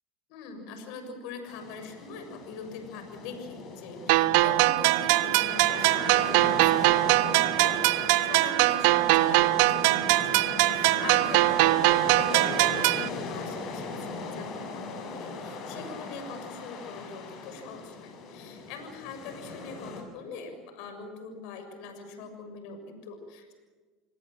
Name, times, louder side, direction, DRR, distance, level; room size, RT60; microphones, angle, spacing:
voice 1, 0.3-10.4 10.7-23.5, left 4 dB, 70° left, 6 dB, 6.8 m, -42 dB
sound 1, 1.5-20.0, left 3 dB, 50° left, 7.9 m, -39 dB
sound 2, 4.1-13.1, right 19 dB, 75° right, 0.8 m, -22 dB
28.5 x 19.5 x 7.8 m, 1.4 s
supercardioid pair, 110°, 0 cm